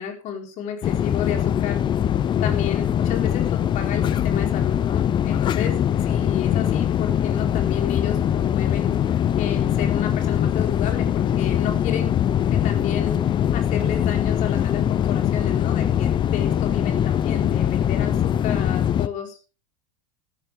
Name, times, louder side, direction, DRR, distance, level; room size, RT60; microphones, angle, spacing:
voice 1, 0.0-1.8 2.4-9.0 9.4-12.1 12.5-19.4, left 8 dB, 45° left, 4 dB, 4.3 m, -32 dB
sound 1, 0.8-19.1, left 10 dB, 25° left, 0.6 m, -22 dB
14.5 x 14.0 x 3.5 m, 0.33 s
supercardioid pair, 120°, 18 cm